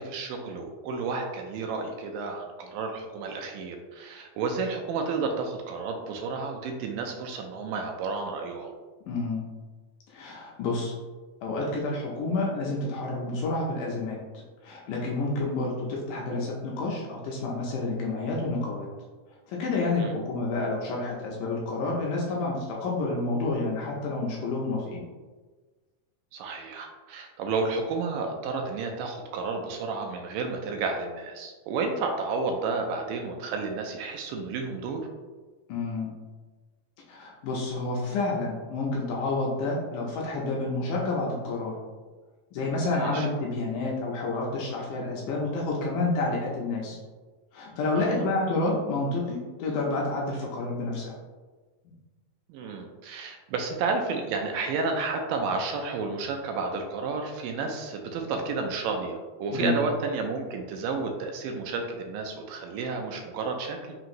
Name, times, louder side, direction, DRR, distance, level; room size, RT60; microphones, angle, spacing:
voice 1, 0.0-8.7 20.0-20.1 26.3-35.0 42.9-43.3 47.9-48.3 52.5-64.0, right 4 dB, 80° right, 3 dB, 2.1 m, -31 dB
voice 2, 9.1-9.5 10.1-10.9 11.4-14.2 14.6-18.9 19.5-25.1 35.7-36.1 37.1-41.8 42.5-47.0 47.5-51.1 59.5-59.8, left 2 dB, 75° left, -2 dB, 2.0 m, -29 dB
5.5 x 2.9 x 2.5 m, 1.3 s
omnidirectional pair, 4.0 m